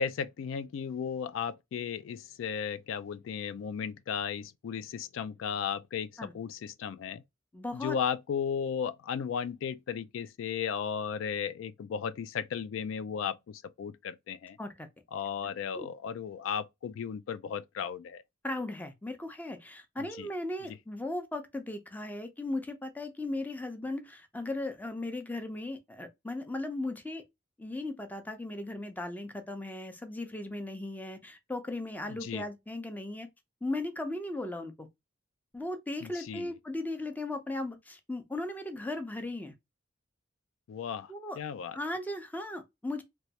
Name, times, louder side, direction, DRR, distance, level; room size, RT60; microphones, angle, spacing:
voice 1, 0.0-7.2 7.7-14.6 15.1-18.2 20.2-20.3 32.2-32.4 36.0-36.5 40.7-41.8, left 7 dB, 80° left, 0.3 m, -35 dB
voice 2, 7.5-8.0 14.6-14.9 15.7-15.9 18.4-27.2 27.6-33.3 33.6-34.9 35.5-39.5 41.1-41.4 41.7-43.0, left 2 dB, 10° left, 0.5 m, -37 dB
3.1 x 2.2 x 2.7 m
head